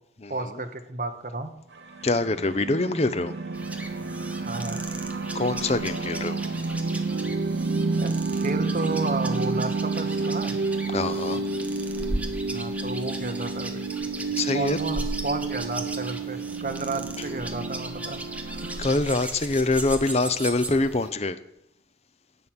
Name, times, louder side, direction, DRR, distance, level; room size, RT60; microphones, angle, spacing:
voice 1, 0.3-1.5 4.4-4.8 8.0-10.6 12.5-13.8 14.5-18.2, right 2 dB, 45° right, 6 dB, 1.2 m, -32 dB
sound 1, 1.7-8.5, right 4 dB, 85° right, 2.2 m, -51 dB
sound 2, 1.9-18.9, right 3 dB, 65° right, 0.8 m, -30 dB
voice 2, 2.0-3.3 5.3-6.4 10.9-11.4 14.4-14.8 17.2-17.3 18.8-21.4, left 2 dB, 35° left, 12 dB, 0.7 m, -24 dB
sound 3, 3.5-21.1, right 1 dB, 10° right, 1.0 m, -37 dB
11.0 x 7.7 x 8.8 m, 0.81 s
head